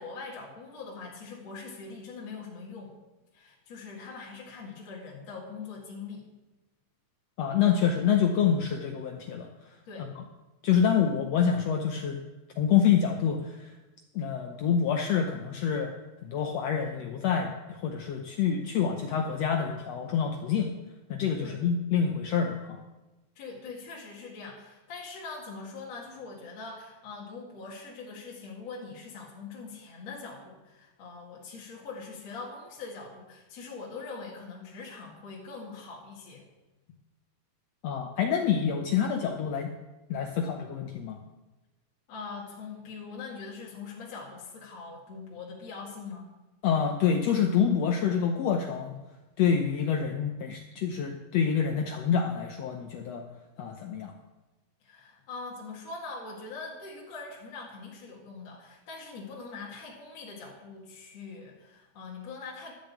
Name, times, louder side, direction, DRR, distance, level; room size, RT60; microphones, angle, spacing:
voice 1, 0.0-2.9 3.3-6.2 9.9-10.1 21.4-21.6 23.4-36.5 42.1-46.3 54.8-62.7, left 4 dB, 50° left, -4 dB, 3.0 m, -42 dB
voice 2, 7.4-9.5 10.6-12.2 12.6-13.7 14.1-15.9 16.2-20.7 21.1-22.8 37.8-39.7 40.1-41.2 46.6-48.9 49.4-53.2 53.6-54.1, left 7 dB, 80° left, 4 dB, 1.4 m, -27 dB
12.0 x 6.6 x 8.2 m, 1.1 s
omnidirectional pair, 4.0 m